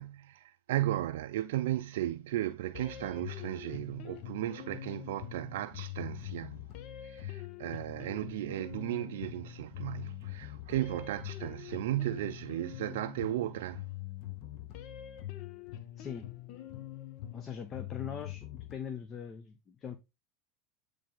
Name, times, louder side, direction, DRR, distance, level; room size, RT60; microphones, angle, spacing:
voice 1, 0.0-6.6 7.0-13.9, right 14 dB, 75° right, 0.4 m, -35 dB
sound 1, 2.7-18.7, left 13 dB, 55° left, 1.0 m, -44 dB
voice 2, 17.3-20.0, left 7 dB, 35° left, 0.8 m, -41 dB
8.5 x 3.4 x 3.8 m
hypercardioid pair, 95°, 0 cm